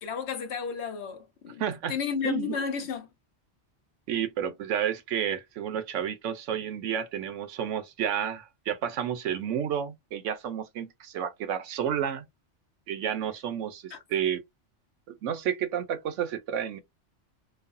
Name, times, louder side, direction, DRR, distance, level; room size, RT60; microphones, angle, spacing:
voice 1, 0.0-1.6 1.9-3.1 13.9-14.0, left 6 dB, 70° left, 1.0 m, -32 dB
voice 2, 1.6-2.0 2.2-2.6 4.1-12.2 12.9-14.4 15.1-16.8, right 9 dB, 85° right, 1.0 m, -31 dB
3.0 x 2.1 x 2.4 m
omnidirectional pair, 1.2 m